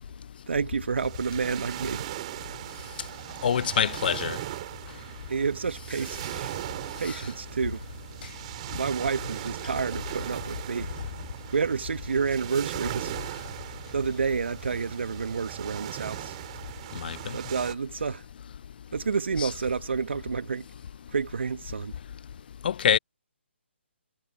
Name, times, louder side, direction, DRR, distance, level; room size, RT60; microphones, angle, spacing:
voice 1, 0.5-2.1 5.3-6.5 7.0-7.8 8.7-10.9 11.5-13.1 13.9-16.3 17.3-18.2 18.9-20.7 21.1-21.9, right 5 dB, 65° right, 1.6 m, -29 dB
sound 1, 1.0-17.8, right 15 dB, 35° right, 3.4 m, -38 dB
voice 2, 3.4-4.4 17.0-17.2 19.4-19.5 22.6-23.0, left 8 dB, 50° left, 0.5 m, -24 dB
figure-of-eight pair, 140°, 6 cm